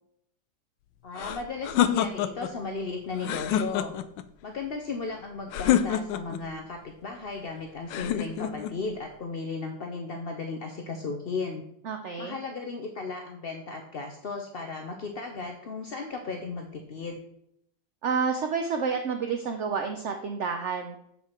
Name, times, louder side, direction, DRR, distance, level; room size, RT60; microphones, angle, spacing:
voice 1, 1.0-3.9 4.4-11.6 12.2-17.2, left 4 dB, 55° left, 3 dB, 0.6 m, -35 dB
sound 1, 1.2-2.5 3.2-4.2 5.5-6.4 7.9-8.8, left 10 dB, 80° left, 1.2 m, -27 dB
voice 2, 11.8-12.4 18.0-21.0, right 5 dB, 65° right, 6 dB, 0.7 m, -29 dB
7.7 x 5.6 x 4.4 m, 0.75 s
omnidirectional pair, 2.0 m